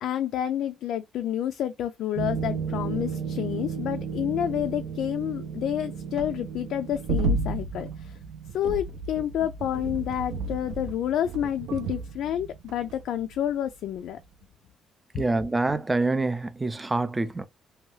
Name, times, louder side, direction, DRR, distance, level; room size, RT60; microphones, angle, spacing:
voice 1, 0.0-8.2 8.5-14.2, left 11 dB, 70° left, 0.3 m, -29 dB
sound 1, 2.2-13.7 14.0-14.2, right 4 dB, 75° right, 0.5 m, -33 dB
voice 2, 15.1-17.4, right 2 dB, 10° right, 0.4 m, -26 dB
2.7 x 2.3 x 3.0 m
cardioid pair, 155°, 0 cm